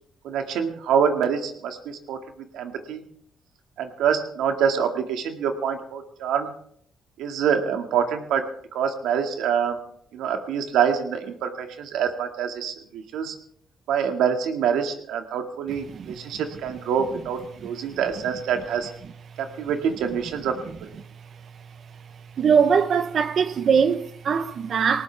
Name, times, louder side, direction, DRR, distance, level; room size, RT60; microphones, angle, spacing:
voice 1, 0.2-2.2 2.5-3.0 3.8-6.5 7.2-8.5 8.7-9.8 10.1-13.4 13.9-18.9 19.4-20.5, right 7 dB, 85° right, 2.1 m, -25 dB
voice 2, 22.4-25.0, right 6 dB, 55° right, 1.0 m, -21 dB
19.0 x 19.0 x 3.5 m
cardioid pair, 90°, 0 cm